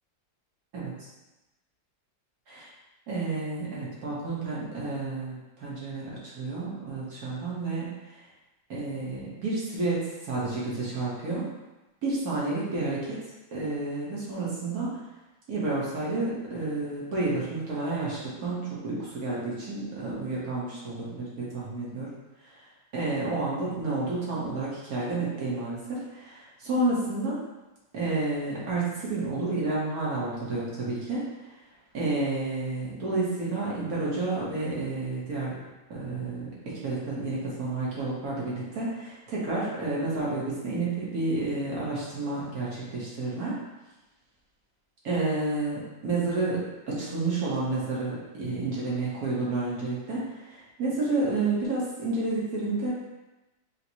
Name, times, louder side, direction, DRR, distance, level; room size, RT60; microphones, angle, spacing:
voice 1, 3.1-6.1 6.3-7.9 8.7-11.4 12.0-13.2 13.5-14.9 15.5-22.1 22.9-27.4 27.9-31.3 31.9-35.6 35.9-43.6 45.0-52.9, right 3 dB, 55° right, -6 dB, 1.4 m, -30 dB
4.0 x 2.2 x 4.4 m, 1.0 s
omnidirectional pair, 2.1 m